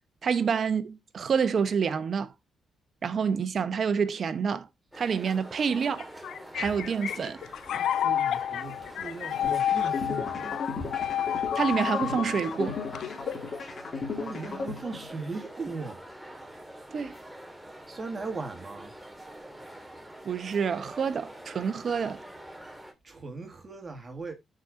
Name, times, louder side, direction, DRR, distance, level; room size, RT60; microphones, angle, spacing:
voice 1, 0.2-2.3 3.0-4.7 4.9-6.1 6.5-7.4 11.5-12.8 16.9-17.2 20.2-22.2, right 6 dB, 55° right, 1.0 m, -28 dB
sound 1, 4.9-22.9, right 1 dB, 5° right, 2.2 m, -45 dB
sound 2, 6.0-13.5, left 10 dB, 75° left, 0.5 m, -30 dB
voice 2, 8.0-10.6 14.2-16.0 17.9-18.9 23.0-24.3, right 3 dB, 35° right, 2.1 m, -38 dB
sound 3, 9.4-15.4, left 4 dB, 50° left, 2.7 m, -36 dB
14.0 x 5.1 x 2.6 m
supercardioid pair, 60°, 0 cm